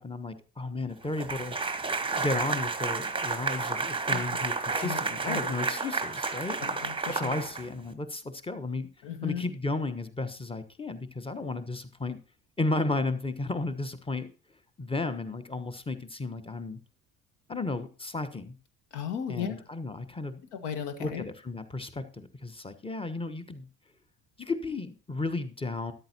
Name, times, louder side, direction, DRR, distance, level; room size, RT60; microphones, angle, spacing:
voice 1, 0.0-1.6 2.1-6.6 7.1-8.9 9.2-12.2 12.6-14.3 14.8-16.8 17.5-18.5 19.3-20.4 21.0-23.7 24.4-25.9, left 2 dB, 10° left, 11 dB, 1.2 m, -33 dB
sound 1, 1.2-7.9, right 4 dB, 10° right, 1.1 m, -31 dB
voice 2, 4.1-4.4 4.7-5.5 6.6-7.3 9.0-9.5 18.9-19.6 20.5-21.3, left 8 dB, 60° left, 9 dB, 1.6 m, -36 dB
13.0 x 11.0 x 2.9 m, 0.37 s
figure-of-eight pair, 55°, 48 cm